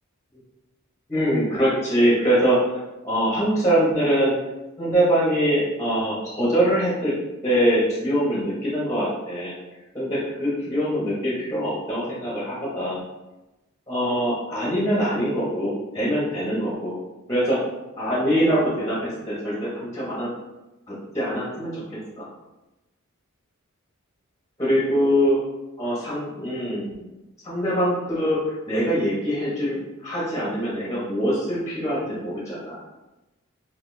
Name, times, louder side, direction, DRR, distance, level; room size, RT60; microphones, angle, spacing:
voice 1, 1.1-2.6 3.0-4.4 4.8-7.1 7.4-9.5 9.9-13.0 13.9-17.0 17.3-17.6 18.0-20.3 20.9-21.8 22.2-22.3 24.6-25.4 25.8-27.0 27.4-32.8, equal, 15° left, -6 dB, 0.8 m, -23 dB
4.0 x 2.5 x 2.6 m, 1.0 s
head